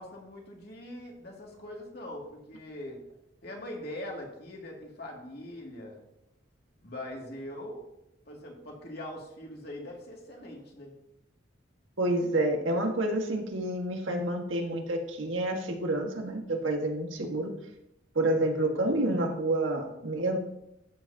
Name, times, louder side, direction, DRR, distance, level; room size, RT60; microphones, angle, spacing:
voice 1, 0.0-3.0 3.4-6.0 6.8-7.9 8.3-10.9, left 1 dB, 55° left, -1 dB, 2.4 m, -42 dB
voice 2, 12.0-17.5 18.1-20.4, right 1 dB, 90° right, 2 dB, 1.7 m, -29 dB
13.5 x 7.8 x 2.9 m, 0.85 s
head